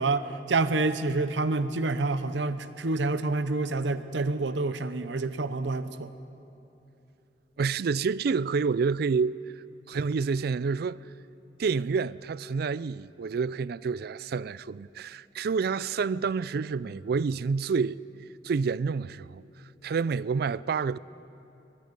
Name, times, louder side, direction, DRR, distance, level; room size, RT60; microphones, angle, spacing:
voice 1, 0.0-6.1, right 3 dB, 85° right, 0.8 m, -28 dB
voice 2, 7.6-9.4 9.9-11.0 11.6-18.0 18.4-19.4 19.8-21.0, right 5 dB, 60° right, 0.4 m, -28 dB
24.0 x 20.5 x 5.3 m
head